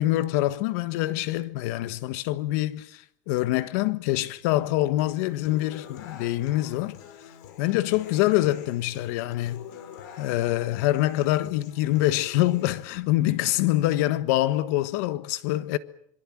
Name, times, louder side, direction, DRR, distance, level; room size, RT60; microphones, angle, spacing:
voice 1, 0.0-7.0 7.6-9.6 10.2-15.8, left 16 dB, 65° left, 1.4 m, -25 dB
Human voice / Acoustic guitar, 5.0-13.0, left 9 dB, 85° left, 5.6 m, -46 dB
26.0 x 23.5 x 7.5 m
cardioid pair, 170°, 9 cm